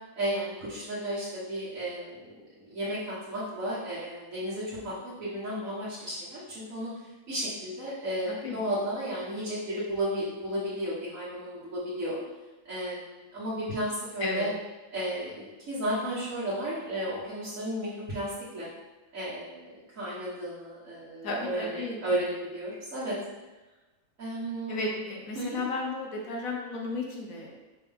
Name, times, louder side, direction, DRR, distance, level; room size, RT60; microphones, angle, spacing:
voice 1, 0.2-6.9 7.3-12.2 12.7-14.5 14.9-18.7 19.1-23.1 24.2-24.8 25.4-25.6, right 1 dB, 65° right, -9 dB, 1.9 m, -33 dB
voice 2, 8.3-8.6 14.2-14.5 21.2-22.0 24.7-27.6, left 2 dB, 75° left, 0 dB, 1.3 m, -33 dB
5.8 x 5.3 x 3.6 m, 1.1 s
omnidirectional pair, 1.5 m